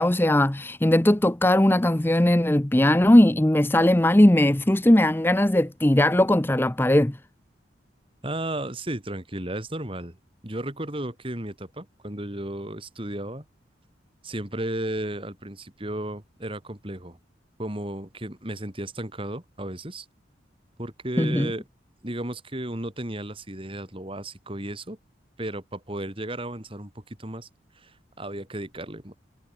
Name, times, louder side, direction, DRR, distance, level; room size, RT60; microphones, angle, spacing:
voice 1, 0.0-7.2 21.2-21.5, left 1 dB, 10° left, 0.6 m, -19 dB
voice 2, 8.2-10.2 10.4-13.4 14.2-17.2 17.6-20.1 20.8-21.6 22.0-25.0 25.4-27.5 27.7-29.1, right 1 dB, 30° right, 3.0 m, -34 dB
head